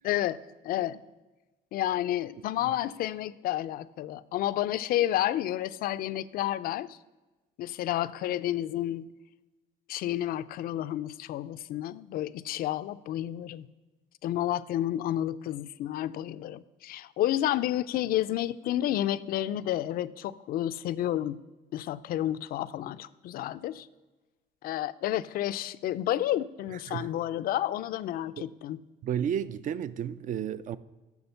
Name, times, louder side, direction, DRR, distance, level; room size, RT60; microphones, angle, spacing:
voice 1, 0.0-0.4 0.6-1.0 1.7-7.0 7.6-9.1 9.9-13.7 14.2-21.4 21.7-23.9 24.6-28.8, left 13 dB, 60° left, 0.4 m, -30 dB
voice 2, 29.0-30.8, right 9 dB, 50° right, 0.4 m, -32 dB
7.0 x 6.3 x 6.7 m
cardioid pair, 110°, 17 cm